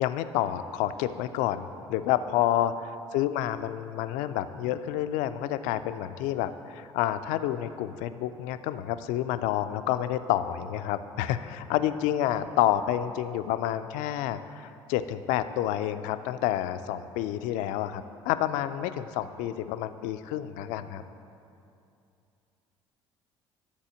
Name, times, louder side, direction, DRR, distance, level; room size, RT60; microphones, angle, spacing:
voice 1, 0.0-21.0, left 12 dB, 70° left, 11 dB, 0.4 m, -29 dB
10.5 x 4.1 x 7.0 m, 2.6 s
hypercardioid pair, 55°, 14 cm